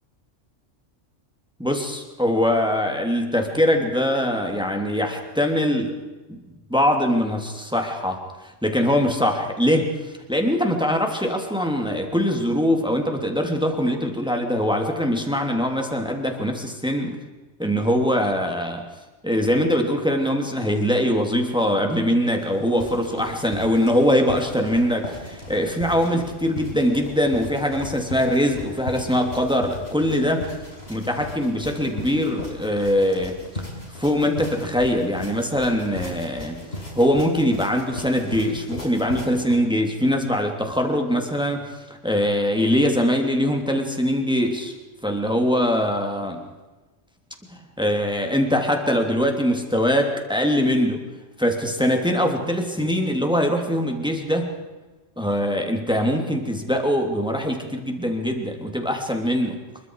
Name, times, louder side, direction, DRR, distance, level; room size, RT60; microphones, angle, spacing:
voice 1, 1.6-6.0 6.3-6.4 6.7-17.2 17.6-18.9 19.2-30.5 30.9-33.4 34.0-44.7 45.0-46.4 47.5-51.1 51.4-54.5 55.2-59.6, equal, 5° right, 3 dB, 3.0 m, -22 dB
sound 1, 22.4-39.6, left 1 dB, 55° left, 6.5 m, -37 dB
27.5 x 23.5 x 4.9 m, 1.2 s
omnidirectional pair, 1.3 m